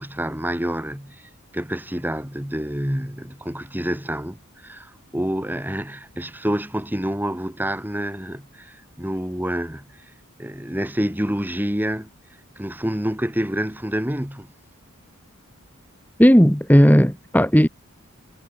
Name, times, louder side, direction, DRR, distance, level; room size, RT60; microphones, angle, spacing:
voice 1, 0.0-10.1 10.4-12.1 12.6-14.5, equal, 10° right, 2.7 m, -28 dB
voice 2, 16.2-17.7, equal, 10° left, 2.8 m, -14 dB
head